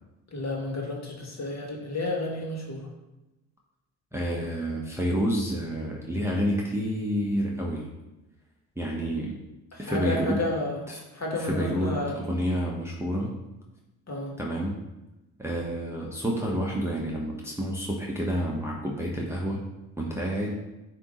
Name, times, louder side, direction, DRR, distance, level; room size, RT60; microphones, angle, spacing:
voice 1, 0.3-2.9 9.7-10.9 11.1-12.1 14.1-14.4, left 2 dB, 35° left, -1 dB, 2.0 m, -31 dB
voice 2, 4.1-7.9 8.8-9.4 9.8-10.4 10.9-11.0 11.3-13.3 14.4-14.8 15.4-19.6 20.0-20.5, equal, 5° right, -3 dB, 1.1 m, -29 dB
9.2 x 3.1 x 3.8 m, 1.0 s
hypercardioid pair, 60°, 47 cm